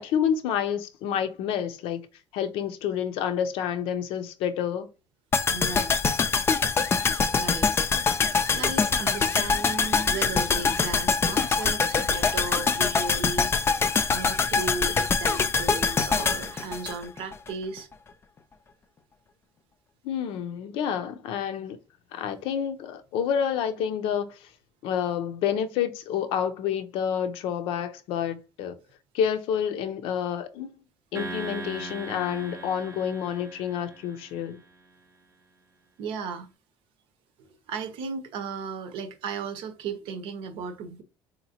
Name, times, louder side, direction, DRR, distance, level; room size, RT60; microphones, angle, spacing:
voice 1, 0.0-2.1 2.3-4.9 20.0-21.8 22.1-24.5 24.8-28.8 29.1-30.7 31.1-34.6, left 8 dB, 80° left, 0.5 m, -29 dB
sound 1, 5.3-17.5 17.8-17.9, left 5 dB, 25° left, 0.3 m, -24 dB
voice 2, 5.5-6.0 7.3-7.7 8.5-13.5 14.1-17.9 36.0-36.5 37.4-41.0, right 4 dB, 75° right, 0.7 m, -35 dB
sound 2, 31.1-34.6, right 3 dB, 30° right, 0.5 m, -39 dB
3.9 x 2.8 x 2.8 m
cardioid pair, 120°, 9 cm